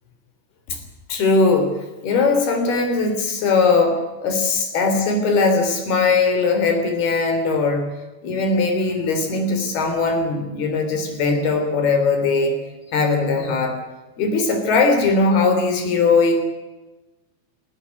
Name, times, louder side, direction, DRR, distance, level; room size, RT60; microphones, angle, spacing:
voice 1, 1.1-7.8 8.2-12.6 12.9-13.8 14.2-16.4, left 4 dB, 85° left, 6 dB, 5.4 m, -19 dB
19.5 x 14.0 x 9.5 m, 1.1 s
omnidirectional pair, 4.3 m